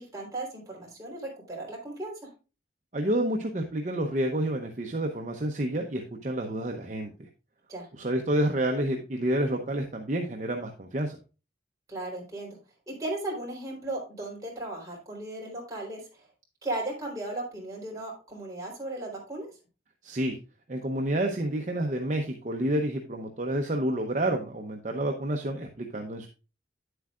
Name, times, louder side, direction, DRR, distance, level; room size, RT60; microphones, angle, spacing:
voice 1, 0.0-2.1 7.7-7.9 11.9-12.6 12.9-16.0 16.6-19.5, right 2 dB, 20° right, -3 dB, 3.6 m, -36 dB
voice 2, 2.9-7.1 8.0-11.2 20.0-20.3 20.7-26.3, right 1 dB, 40° right, 3 dB, 0.7 m, -29 dB
9.5 x 7.9 x 2.4 m, 0.31 s
head